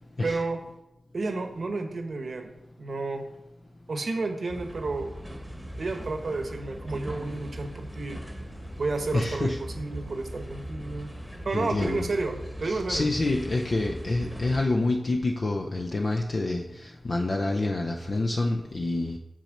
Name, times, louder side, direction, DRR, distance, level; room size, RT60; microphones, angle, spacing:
voice 1, 0.2-0.6 1.1-2.5 2.8-3.2 3.9-5.1 5.8-8.2 8.8-11.1 11.4-13.1, right 3 dB, 55° right, 5 dB, 1.0 m, -31 dB
sound 1, 4.5-14.6, equal, 5° left, 1.2 m, -39 dB
voice 2, 9.1-9.6 11.5-12.1 12.6-16.6 17.0-19.2, left 2 dB, 45° left, 1 dB, 0.6 m, -27 dB
6.1 x 4.3 x 6.5 m, 0.89 s
wide cardioid pair, 95°, 0 cm